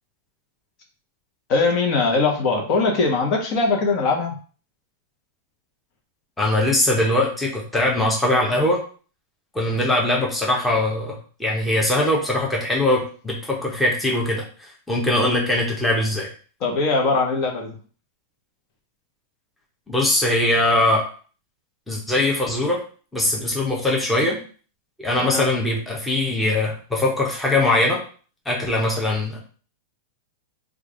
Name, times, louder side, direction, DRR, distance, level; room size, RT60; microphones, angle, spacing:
voice 1, 1.5-4.3 16.6-17.8 25.1-25.5, left 3 dB, 45° left, 1 dB, 1.0 m, -21 dB
voice 2, 6.4-8.8 9.5-16.3 19.9-21.1 21.9-22.8 23.1-24.4 25.0-28.0 28.4-29.4, left 1 dB, 5° left, -3 dB, 1.0 m, -21 dB
3.1 x 2.4 x 3.8 m, 0.39 s
hypercardioid pair, 130°, 0 cm